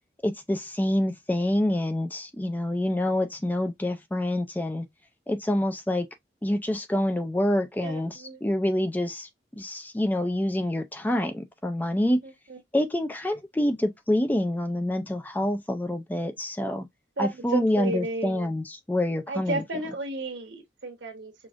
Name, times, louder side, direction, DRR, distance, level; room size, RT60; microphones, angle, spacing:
voice 1, 0.2-4.9 5.3-6.1 6.4-9.3 9.6-12.2 12.7-16.9 17.2-19.6, left 1 dB, 10° left, 0.4 m, -27 dB
voice 2, 7.8-8.4 12.2-12.6 17.2-18.5 19.3-21.3, right 2 dB, 85° right, 1.1 m, -33 dB
4.9 x 2.4 x 2.5 m
head